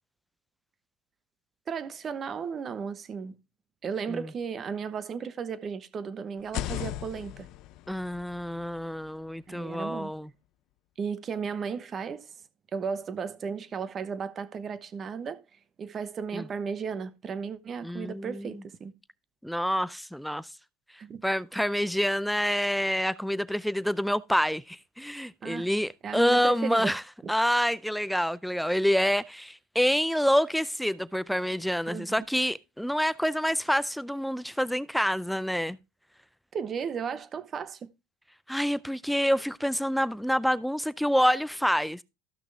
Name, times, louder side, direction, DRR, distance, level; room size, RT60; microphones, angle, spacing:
voice 1, 1.7-3.3 3.8-7.5 9.5-10.1 11.0-12.3 12.7-15.4 15.8-18.9 21.0-21.2 25.4-25.7 26.0-27.0 27.2-27.3 31.9-32.2 36.5-37.9, right 6 dB, 30° right, 1.0 m, -35 dB
sound 1, 6.4-10.2, left 14 dB, 55° left, 0.5 m, -39 dB
voice 2, 7.9-10.3 16.3-16.5 17.8-18.6 19.4-20.5 21.2-27.0 27.3-35.8 38.5-42.0, equal, ahead, 0.4 m, -27 dB
13.5 x 6.1 x 3.4 m
supercardioid pair, 130°, 0 cm